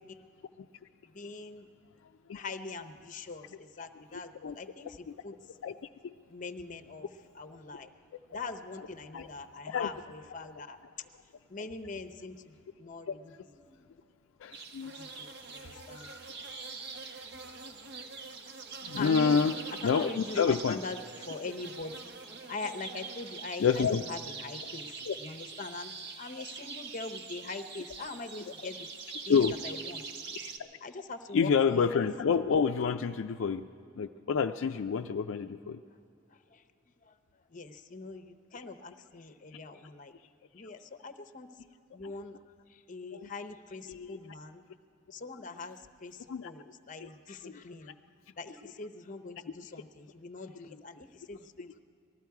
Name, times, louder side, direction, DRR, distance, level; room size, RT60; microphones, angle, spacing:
voice 1, 1.1-1.7 2.3-5.0 5.2-5.3 6.3-7.1 7.3-7.9 8.3-10.8 11.5-13.8 15.0-16.1 19.0-19.4 19.8-21.9 22.5-24.9 25.2-25.9 26.2-28.8 29.3-30.0 30.8-31.9 36.5-36.6 37.1-37.2 37.5-38.2 38.5-40.1 40.5-41.5 41.9-42.4 42.9-44.6 45.1-47.9 48.4-51.7, left 3 dB, 40° left, 8 dB, 0.7 m, -42 dB
voice 2, 4.1-4.6 5.1-5.2 5.6-5.7 6.0-6.1 8.8-8.9 9.1-9.3 9.7-9.9 13.1-13.2 14.4-14.9 15.6-16.2 16.5-16.7 18.8-19.6 19.8-20.8 23.6-24.1 25.0-25.2 28.5-28.6 29.2-29.5 30.6-30.7 31.3-33.7 34.0-35.8 42.0-42.1 43.1-43.3 43.9-44.2 46.3-46.5 47.0-47.1 47.4-47.6, left 6 dB, 70° left, 7 dB, 0.4 m, -29 dB
sound 1, 14.5-30.6, right 4 dB, 60° right, 0.9 m, -43 dB
19.5 x 13.5 x 4.7 m, 2.5 s
head